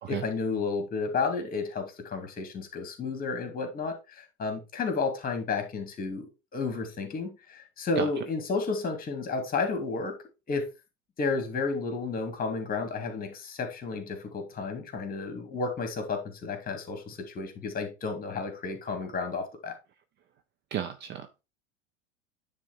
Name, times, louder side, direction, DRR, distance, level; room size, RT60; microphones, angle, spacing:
voice 1, 0.1-10.2 10.5-10.7 11.2-19.8, left 4 dB, 25° left, 2.2 m, -32 dB
voice 2, 20.7-21.4, right 10 dB, 30° right, 0.7 m, -33 dB
9.7 x 3.6 x 4.4 m
figure-of-eight pair, 85°, 38 cm